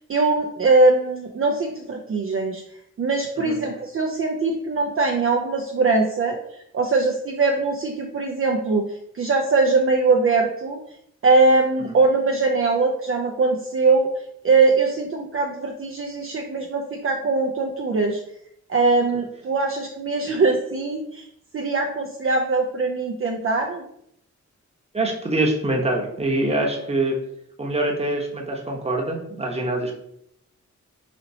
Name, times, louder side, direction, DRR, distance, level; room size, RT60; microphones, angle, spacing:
voice 1, 0.0-2.6 3.0-6.4 6.7-8.9 9.1-10.8 11.2-14.1 14.4-18.2 18.7-21.3 21.5-23.8, right 3 dB, 50° right, 1 dB, 0.5 m, -21 dB
voice 2, 24.9-27.2 27.6-29.9, right 2 dB, 20° right, -1 dB, 0.9 m, -24 dB
4.2 x 2.8 x 2.7 m, 0.73 s
cardioid pair, 75°, 29 cm